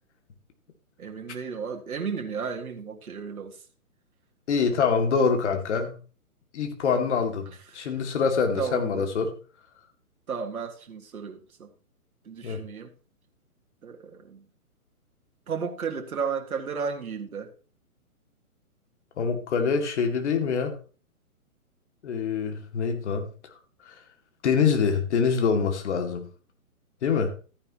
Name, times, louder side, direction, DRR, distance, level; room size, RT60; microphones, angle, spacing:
voice 1, 1.0-3.6 7.8-8.0 8.6-9.0 10.3-11.7 12.3-12.9 13.8-14.4 15.5-17.5, right 6 dB, 70° right, 1.9 m, -33 dB
voice 2, 4.5-5.9 6.5-9.3 12.4-12.6 19.2-20.8 22.0-23.3 23.9-24.0 24.4-26.3 27.0-27.3, left 5 dB, 50° left, 2.4 m, -25 dB
13.5 x 9.8 x 3.0 m
hypercardioid pair, 140°, 44 cm